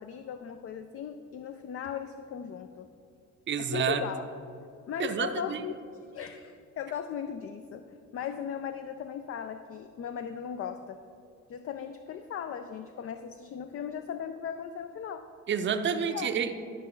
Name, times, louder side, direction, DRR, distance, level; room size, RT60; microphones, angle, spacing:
voice 1, 0.0-2.9 3.6-4.3 4.9-5.7 6.0-11.0 11.5-15.3 16.0-16.3, left 8 dB, 50° left, 9 dB, 0.4 m, -38 dB
voice 2, 3.5-4.0 5.0-5.6 15.5-16.5, right 7 dB, 40° right, 7 dB, 0.6 m, -29 dB
11.5 x 5.2 x 3.9 m, 2.6 s
cardioid pair, 90°, 30 cm